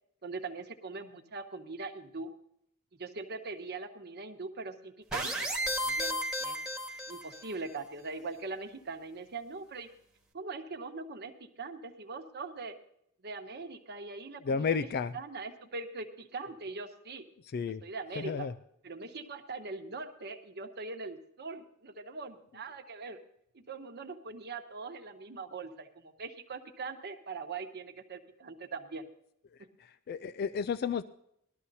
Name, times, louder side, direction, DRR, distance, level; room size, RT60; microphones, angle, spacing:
voice 1, 0.2-2.3 3.0-6.6 7.1-9.9 10.3-11.3 11.6-12.8 13.2-14.9 15.1-17.3 17.8-18.5 18.8-23.2 23.5-29.1 29.6-29.7, right 3 dB, 50° right, 5 dB, 1.1 m, -41 dB
sound 1, 5.1-7.5, equal, 5° right, 1.5 m, -33 dB
voice 2, 14.4-15.1 17.4-17.8 18.2-18.5 29.5-31.0, left 5 dB, 45° left, 14 dB, 0.3 m, -33 dB
19.5 x 12.5 x 2.7 m, 0.75 s
head